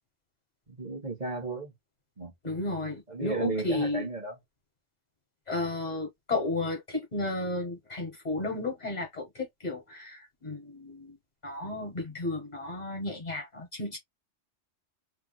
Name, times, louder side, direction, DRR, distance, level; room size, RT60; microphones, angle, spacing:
voice 1, 0.7-1.7 2.2-2.3 3.1-4.4, right 3 dB, 40° right, 1.5 m, -34 dB
voice 2, 2.4-4.1 5.5-11.2 11.4-14.0, left 2 dB, 40° left, 1.3 m, -33 dB
3.5 x 3.2 x 2.2 m
omnidirectional pair, 1.2 m